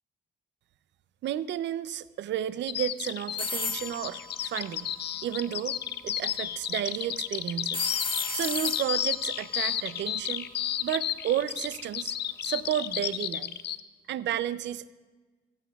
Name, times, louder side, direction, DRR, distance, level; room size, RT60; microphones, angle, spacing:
voice 1, 1.2-4.9 5.2-5.8 6.0-7.9 8.3-10.5 10.8-12.1 12.4-13.6 14.1-14.9, right 11 dB, 65° right, 15 dB, 0.5 m, -32 dB
Bird vocalization bird call bird song, 2.7-13.8, left 11 dB, 55° left, 0.5 m, -32 dB
sound 1, 3.4-5.4 7.7-10.8, left 3 dB, 25° left, 1.0 m, -35 dB
15.0 x 15.0 x 2.4 m, 1.3 s
cardioid pair, 90°, 20 cm